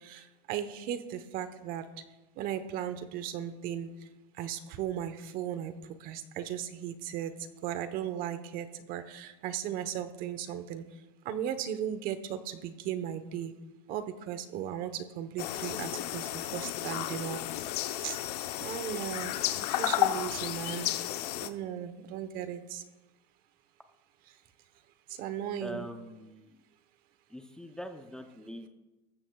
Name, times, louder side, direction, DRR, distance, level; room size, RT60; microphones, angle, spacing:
voice 1, 0.0-1.9 2.4-3.9 4.4-5.7 6.0-7.3 7.6-10.8 11.2-13.5 13.9-17.4 18.0-18.2 18.6-19.4 19.7-21.0 21.4-22.8 25.1-25.9, right 10 dB, 45° right, 11 dB, 1.1 m, -36 dB
sound 1, 15.4-21.5, left 13 dB, 80° left, 0.9 m, -33 dB
voice 2, 25.6-26.5 27.3-28.7, equal, 5° left, 5 dB, 0.7 m, -43 dB
19.0 x 14.5 x 2.4 m, 1.1 s
supercardioid pair, 140°, 20 cm